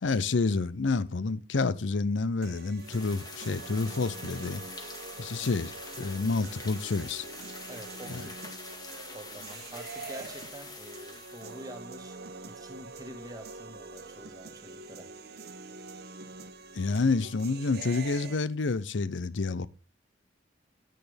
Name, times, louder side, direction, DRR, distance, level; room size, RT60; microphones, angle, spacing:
voice 1, 0.0-4.6 5.2-7.3 16.7-19.7, left 3 dB, 85° left, 0.6 m, -29 dB
sound 1, 2.4-18.4, right 3 dB, 60° right, 1.0 m, -45 dB
sound 2, 2.8-11.8, left 3 dB, 20° left, 1.9 m, -45 dB
voice 2, 7.7-8.3 9.1-12.2 12.4-15.4, right 1 dB, 20° right, 1.5 m, -47 dB
10.5 x 9.3 x 3.4 m
head